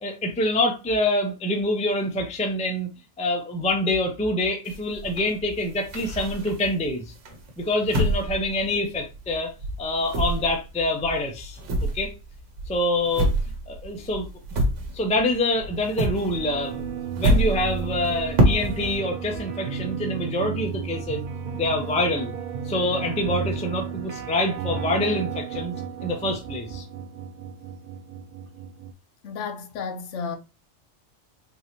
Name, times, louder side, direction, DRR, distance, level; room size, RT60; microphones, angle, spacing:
voice 1, 0.0-2.9 3.2-7.1 7.6-9.5 9.8-11.6 11.9-12.1 12.7-13.3 13.7-14.3 14.9-16.9 17.2-21.2 21.5-22.3 22.6-25.7 26.0-26.8, left 1 dB, 10° left, 0.4 m, -26 dB
sound 1, 4.7-6.8 7.3-9.4 9.6-15.3 15.6-19.0, right 1 dB, 85° right, 1.2 m, -27 dB
sound 2, 15.5-28.9, right 7 dB, 60° right, 0.6 m, -33 dB
voice 2, 29.2-30.4, left 5 dB, 90° left, 0.9 m, -32 dB
3.8 x 2.7 x 2.9 m
omnidirectional pair, 1.2 m